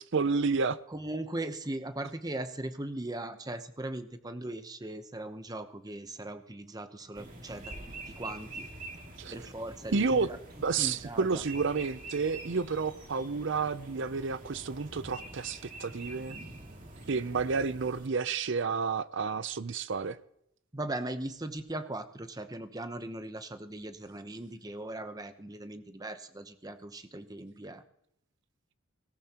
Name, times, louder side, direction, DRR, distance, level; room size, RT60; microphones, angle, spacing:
voice 1, 0.1-0.8 9.2-9.3 9.9-10.3 10.6-16.4 17.1-20.2, right 4 dB, 60° right, 0.6 m, -30 dB
voice 2, 0.9-7.7 8.2-8.7 9.3-10.4 10.8-11.4 20.7-27.8, right 1 dB, 20° right, 0.8 m, -39 dB
sound 1, 7.1-18.1, right 2 dB, 40° right, 2.5 m, -46 dB
18.0 x 18.0 x 2.9 m
head